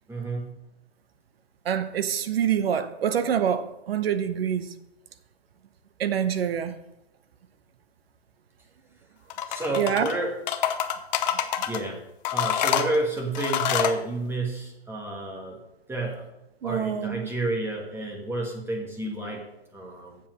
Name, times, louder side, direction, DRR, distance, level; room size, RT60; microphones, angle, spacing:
voice 1, 0.1-0.5 9.5-10.4 11.7-12.0 12.3-15.6 15.9-16.3 16.6-19.4 19.7-20.2, right 2 dB, 5° right, 1.6 m, -30 dB
voice 2, 1.6-4.7 6.0-6.7 9.7-10.1 16.6-17.3, right 8 dB, 65° right, 0.9 m, -26 dB
sound 1, 9.3-10.1 10.5-11.8 12.2-14.0, left 10 dB, 45° left, 0.8 m, -26 dB
7.5 x 7.2 x 6.1 m
hypercardioid pair, 130°, 32 cm